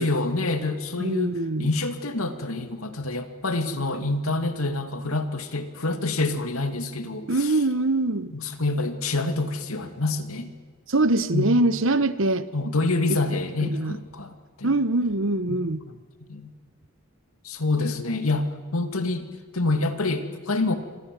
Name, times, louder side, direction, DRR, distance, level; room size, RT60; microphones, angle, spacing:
voice 1, 0.0-7.5 8.3-10.5 11.3-11.5 12.5-14.7 15.5-15.6 16.3-16.5 17.4-19.3 19.5-20.8, left 2 dB, 90° left, 2.4 m, -27 dB
voice 2, 1.0-1.7 7.3-8.3 10.9-12.5 13.6-14.0 14.6-15.8, right 2 dB, 70° right, 1.2 m, -23 dB
27.0 x 25.5 x 7.7 m
head